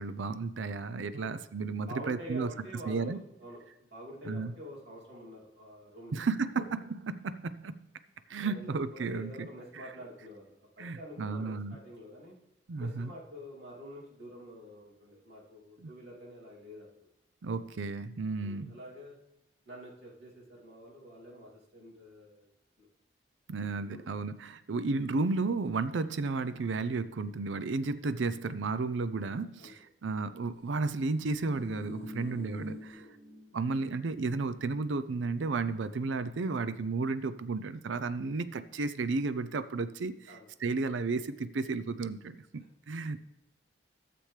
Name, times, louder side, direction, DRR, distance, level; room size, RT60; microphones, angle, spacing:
voice 1, 0.0-2.5 2.9-3.2 4.2-4.5 6.1-6.6 7.0-7.9 8.3-9.5 10.8-11.8 12.7-13.1 15.8-15.9 17.4-18.8 23.5-33.1 33.5-40.3 40.6-43.2, right 3 dB, 90° right, 0.5 m, -33 dB
voice 2, 1.9-6.2 8.4-12.3 12.8-17.1 18.4-19.2 19.7-22.5 22.8-22.9 23.8-24.1 29.6-29.7 32.1-32.4 32.9-33.1 40.3-40.5, equal, 60° right, 2.7 m, -47 dB
sound 1, 31.2-33.8 34.1-34.3, equal, 35° left, 2.3 m, -45 dB
13.5 x 6.9 x 3.3 m
head